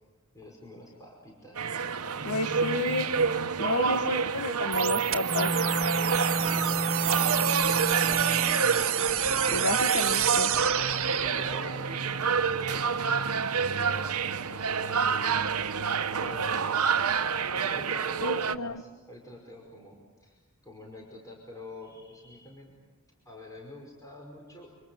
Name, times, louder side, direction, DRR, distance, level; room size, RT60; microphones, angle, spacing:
voice 1, 0.3-1.7 2.1-2.8 3.8-4.1 6.5-8.5 9.5-9.9 11.1-13.0 13.7-15.6 16.2-16.9 17.5-22.8 23.2-24.7, equal, 15° left, -1 dB, 5.3 m, -47 dB
sound 1, 1.6-18.6, right 5 dB, 85° right, 1.0 m, -28 dB
voice 2, 2.2-3.1 3.6-5.5 9.5-10.5 18.2-18.8, left 3 dB, 85° left, 10 dB, 1.2 m, -31 dB
sound 2, 4.7-11.7, right 11 dB, 65° right, 1.7 m, -30 dB
Wind instrument woodwind instrument, 5.3-8.7, right 2 dB, 45° right, 1.7 m, -31 dB
30.0 x 27.0 x 7.2 m, 1.3 s
head